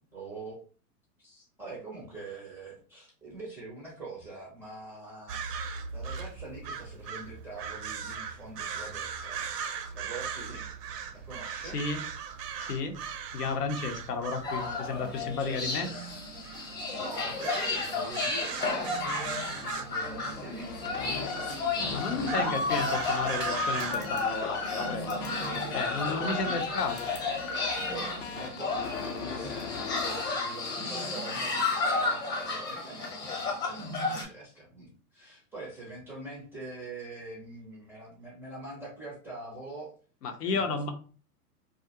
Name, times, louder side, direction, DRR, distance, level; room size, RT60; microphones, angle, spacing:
voice 1, 0.1-0.6 1.2-5.4 5.9-9.5 9.9-10.6 11.1-11.8 15.2-15.9 17.0-20.8 26.0-26.9 27.7-39.9 40.4-40.9, right 2 dB, 5° right, -4 dB, 0.4 m, -44 dB
sound 1, 5.3-23.9, right 6 dB, 80° right, 0.6 m, -39 dB
voice 2, 11.6-12.0 12.6-13.0 13.3-15.9 21.9-25.2 25.7-27.1 40.2-40.9, left 4 dB, 90° left, 6 dB, 0.7 m, -32 dB
sound 2, 14.4-34.2, left 3 dB, 20° left, 0.8 m, -32 dB
sound 3, 20.6-31.2, left 5 dB, 55° left, 0.5 m, -39 dB
2.4 x 2.0 x 2.8 m, 0.40 s
hypercardioid pair, 120°, 46 cm